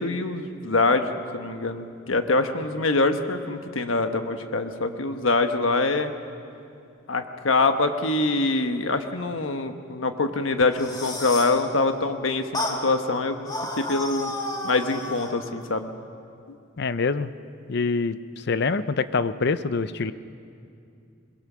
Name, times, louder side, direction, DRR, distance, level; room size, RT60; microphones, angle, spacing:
voice 1, 0.0-6.1 7.1-13.4 13.7-14.3 14.6-15.9, left 3 dB, 80° left, 7 dB, 1.2 m, -24 dB
sound 1, 10.6-11.6 12.5-12.8 13.4-15.4, left 1 dB, 20° left, 1.9 m, -31 dB
voice 2, 16.8-17.3 17.7-18.2 18.5-20.1, left 4 dB, 55° left, 14 dB, 0.6 m, -25 dB
21.5 x 21.5 x 6.2 m, 2.5 s
head